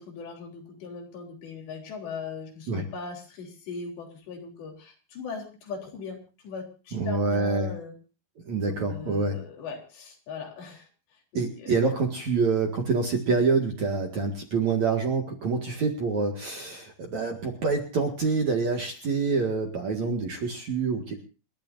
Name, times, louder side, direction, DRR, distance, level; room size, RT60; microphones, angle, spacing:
voice 1, 0.0-7.9 8.9-10.9 11.3-11.7, left 5 dB, 65° left, 1 dB, 5.7 m, -39 dB
voice 2, 6.9-7.7 8.5-9.4 11.3-21.2, right 4 dB, 50° right, 2 dB, 2.5 m, -26 dB
28.5 x 12.5 x 2.6 m, 0.35 s
omnidirectional pair, 5.3 m